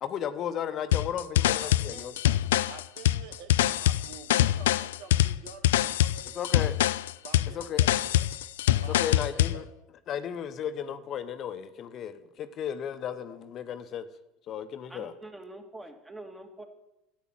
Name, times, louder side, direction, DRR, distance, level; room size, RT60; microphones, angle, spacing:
voice 1, 0.0-2.1 6.4-6.7 7.5-7.8 9.0-9.6 10.1-14.1 14.5-15.1, left 9 dB, 45° left, 11 dB, 1.0 m, -34 dB
sound 1, 0.9-9.6, left 13 dB, 75° left, 0.3 m, -24 dB
voice 2, 1.6-2.1 2.7-6.9 7.2-8.3 8.8-9.6, right 6 dB, 65° right, 8 dB, 1.6 m, -48 dB
voice 3, 14.9-16.6, right 2 dB, 10° right, 5 dB, 2.3 m, -45 dB
12.0 x 8.3 x 7.7 m, 0.93 s
hypercardioid pair, 75°, 0 cm